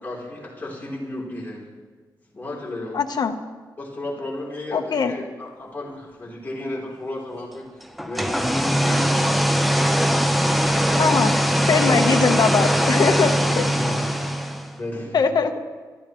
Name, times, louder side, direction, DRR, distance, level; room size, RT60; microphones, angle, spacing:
voice 1, 0.0-1.7 2.3-3.0 3.8-7.7 8.0-9.8 13.4-14.2 14.7-15.3, left 1 dB, 25° left, -4 dB, 3.8 m, -34 dB
voice 2, 2.9-3.4 4.7-5.2 11.0-11.4 11.6-13.3 15.1-15.5, left 5 dB, 65° left, 5 dB, 1.1 m, -21 dB
sound 1, 8.0-14.8, equal, ahead, 0.8 m, -21 dB
28.0 x 11.5 x 3.2 m, 1.4 s
wide cardioid pair, 135°, 8 cm